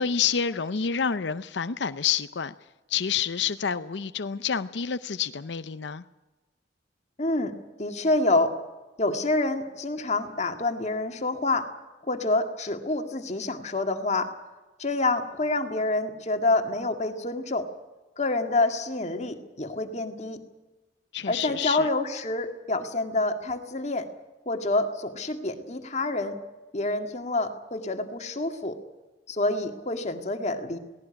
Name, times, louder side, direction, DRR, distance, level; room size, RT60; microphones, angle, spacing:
voice 1, 0.0-2.5 2.9-6.0 21.1-21.9, left 7 dB, 70° left, 0.6 m, -28 dB
voice 2, 7.2-8.5 9.0-11.7 12.0-14.3 14.8-17.7 18.2-20.4 21.3-24.1 24.5-26.4 26.7-28.8 29.3-30.8, left 2 dB, 35° left, 2.0 m, -27 dB
18.0 x 17.5 x 9.8 m
head